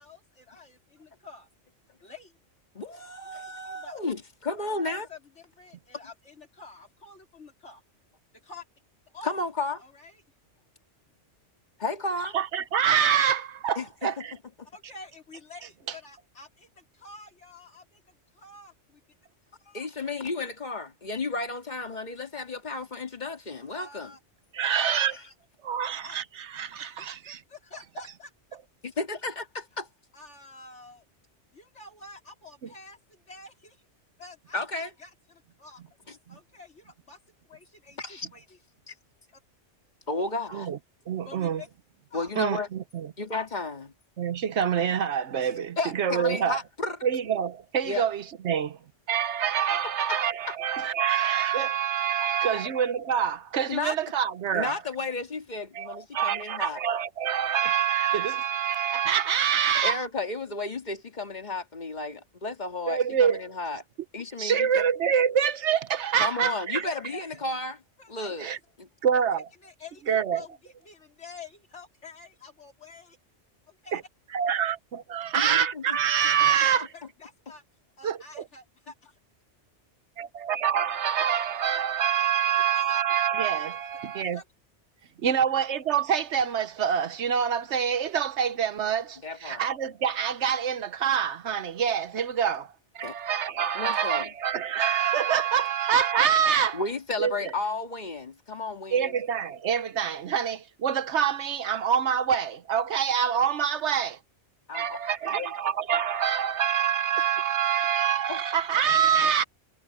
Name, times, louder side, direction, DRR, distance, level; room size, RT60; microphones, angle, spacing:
voice 1, 0.0-1.5 2.0-2.4 3.6-4.0 4.6-7.8 8.4-8.7 9.1-9.3 9.8-10.2 14.7-19.0 23.7-24.2 26.0-26.2 26.8-28.3 30.1-31.0 31.5-33.8 34.2-35.8 36.3-37.2 37.4-38.6 39.3-39.4 41.2-41.7 42.1-42.3 66.8-67.4 68.0-68.6 69.6-73.2 73.7-74.0 76.4-77.6 78.0-79.2 81.7-81.8 82.7-83.0 84.3-84.5, left 3 dB, 70° left, 3.7 m, -48 dB
voice 2, 2.7-5.1 9.2-9.8 11.8-12.4 13.8-14.2 19.7-24.1 24.7-25.2 28.8-29.9 34.5-34.9 36.1-36.2 38.0-38.3 38.9-39.0 40.1-40.7 42.1-42.7 43.2-43.9 45.8-47.0 47.8-48.0 50.1-50.2 50.5-50.6 52.2-52.7 53.7-54.0 54.5-56.8 59.8-63.8 64.1-64.8 66.2-67.8 68.1-68.5 75.4-76.0 89.2-89.6 93.0-93.1 93.7-94.3 96.7-99.1 104.7-105.5 108.3-108.4, left 3 dB, 35° left, 2.1 m, -33 dB
voice 3, 12.3-14.3 24.5-25.2 25.6-27.4 40.5-40.8 41.1-41.6 42.4-43.1 44.2-46.6 47.0-48.8 49.1-54.7 55.7-60.0 62.9-63.4 64.4-66.8 68.4-68.6 69.0-69.4 70.1-70.4 73.9-74.0 74.3-76.9 78.0-78.4 80.2-84.4 85.2-96.8 97.2-97.5 98.9-104.2 104.7-109.4, right 8 dB, 70° right, 1.1 m, -26 dB
omnidirectional pair, 1.2 m